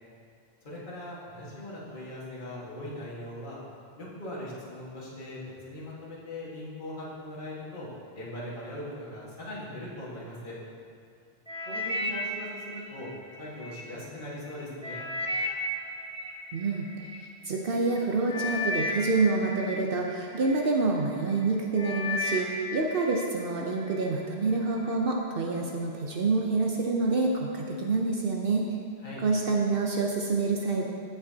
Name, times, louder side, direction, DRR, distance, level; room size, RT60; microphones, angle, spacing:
voice 1, 0.6-3.6 4.0-5.4 5.6-7.9 8.1-10.5 11.6-13.1 13.4-15.1 29.0-29.2, left 1 dB, 50° left, -7 dB, 1.8 m, -40 dB
sound 1, 11.5-13.8 14.3-17.2 17.9-18.0 18.3-20.7 21.2-21.5 21.8-23.3 23.6-24.1 24.7-24.8, left 2 dB, 5° left, 0.7 m, -34 dB
voice 2, 16.5-16.9 17.2-28.6 29.2-30.8, right 3 dB, 60° right, -1 dB, 0.9 m, -27 dB
15.5 x 5.9 x 2.8 m, 2.4 s
omnidirectional pair, 1.1 m